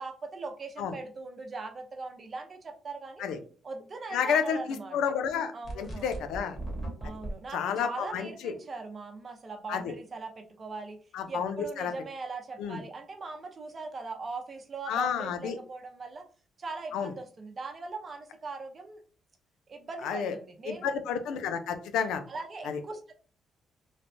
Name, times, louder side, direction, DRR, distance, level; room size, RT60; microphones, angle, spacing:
voice 1, 0.0-3.2 3.6-5.0 5.5-6.2 7.0-11.0 11.3-16.2 16.6-19.0 19.7-21.0 21.3-21.4 22.3-23.1, right 3 dB, 40° right, 4 dB, 0.6 m, -40 dB
voice 2, 4.1-6.6 7.5-8.5 9.7-9.9 11.1-11.9 12.6-12.8 14.9-15.6 16.9-17.1 20.0-20.3 20.7-22.3 22.7-22.8, left 7 dB, 90° left, 8 dB, 0.4 m, -30 dB
sound 1, 5.6-7.3, right 2 dB, 45° left, 1.2 m, -37 dB
3.2 x 2.1 x 2.6 m, 0.40 s
cardioid pair, 90°, 0 cm